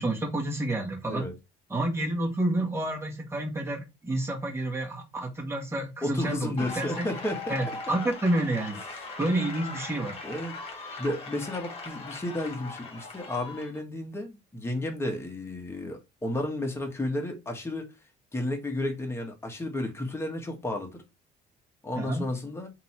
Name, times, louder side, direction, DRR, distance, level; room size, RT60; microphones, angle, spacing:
voice 1, 0.0-1.3 1.7-7.1 7.5-8.8 9.2-10.2 22.0-22.3, right 1 dB, 15° right, 1.6 m, -29 dB
voice 2, 6.0-8.0 10.2-10.5 11.0-17.9 18.3-21.0 21.8-22.7, left 1 dB, 15° left, 1.5 m, -32 dB
sound 1, 6.6-13.8, left 3 dB, 35° left, 1.8 m, -40 dB
3.6 x 2.9 x 4.6 m
cardioid pair, 110°, 17 cm